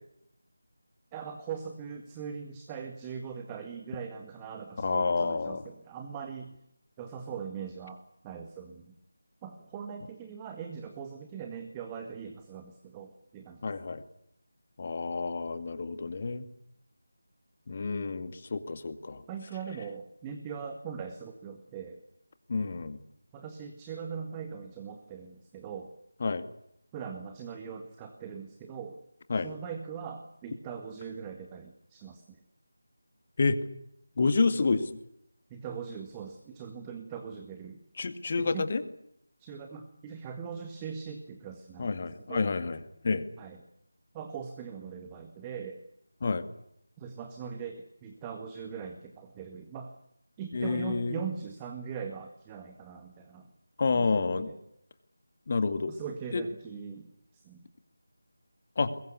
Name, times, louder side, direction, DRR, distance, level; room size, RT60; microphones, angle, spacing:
voice 1, 1.1-6.5 7.0-9.0 9.4-13.7 19.3-22.0 23.3-25.9 26.9-29.0 29.4-32.4 35.5-37.8 38.4-38.7 39.4-41.9 42.3-42.5 43.4-43.6 44.1-45.8 47.0-49.9 50.4-53.5 53.9-54.6 55.9-57.6, right 6 dB, 15° right, 5 dB, 1.8 m, -41 dB
voice 2, 4.8-5.6 13.6-14.0 14.8-16.4 17.7-19.2 22.5-23.0 26.2-26.4 29.3-29.5 33.4-33.6 34.2-35.0 38.0-38.8 41.8-42.8 43.0-43.3 46.2-46.4 50.5-51.2 53.8-54.5 55.5-55.9 56.3-56.4 58.8-58.9, left 4 dB, 35° left, 10 dB, 2.1 m, -29 dB
23.5 x 22.0 x 8.3 m, 0.75 s
figure-of-eight pair, 160°, 0 cm